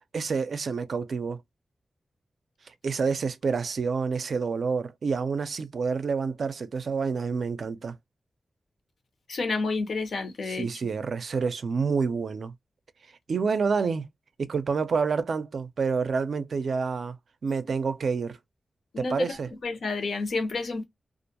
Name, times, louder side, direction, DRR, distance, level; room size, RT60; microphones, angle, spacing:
voice 1, 0.1-1.4 2.8-8.0 10.5-12.5 13.3-14.1 14.4-17.2 17.4-18.4 19.0-19.5, right 5 dB, 70° right, 0.4 m, -28 dB
voice 2, 9.3-10.7 18.9-20.8, left 3 dB, 75° left, 0.7 m, -30 dB
2.4 x 2.2 x 2.7 m
wide cardioid pair, 130°, 0 cm